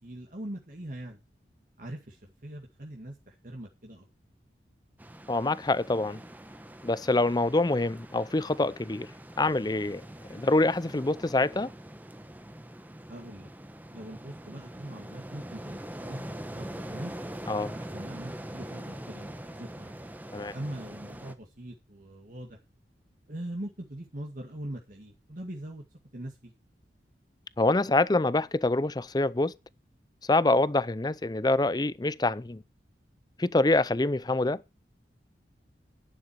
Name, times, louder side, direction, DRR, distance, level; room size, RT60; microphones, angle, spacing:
voice 1, 0.0-1.2 1.8-4.1 13.1-13.5 13.9-17.1 17.6-20.0 20.5-22.6 23.3-25.8 26.1-26.5, right 1 dB, 50° right, 1.9 m, -41 dB
sound 1, 5.0-21.3, right 1 dB, 10° right, 1.0 m, -43 dB
voice 2, 5.3-6.2 6.8-9.1 9.4-10.0 10.3-11.7 17.5-17.7 20.3-20.5 27.6-29.5 30.3-32.6 33.4-34.6, left 2 dB, 25° left, 0.5 m, -25 dB
11.0 x 9.9 x 4.7 m
head